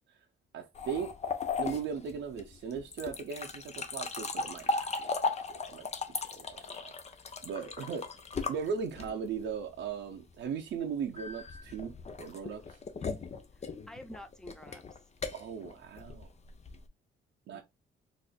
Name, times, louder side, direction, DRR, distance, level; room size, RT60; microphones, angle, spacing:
voice 1, 0.5-1.1 1.6-6.9 7.4-8.1 8.5-12.8 15.3-16.3 17.5-17.6, right 6 dB, 70° right, 0.8 m, -38 dB
sound 1, 0.8-9.4 11.2-16.9, left 4 dB, 35° left, 0.7 m, -37 dB
voice 2, 13.5-15.0 17.5-17.6, equal, 5° left, 0.8 m, -49 dB
4.2 x 2.7 x 2.3 m
cardioid pair, 90°, 20 cm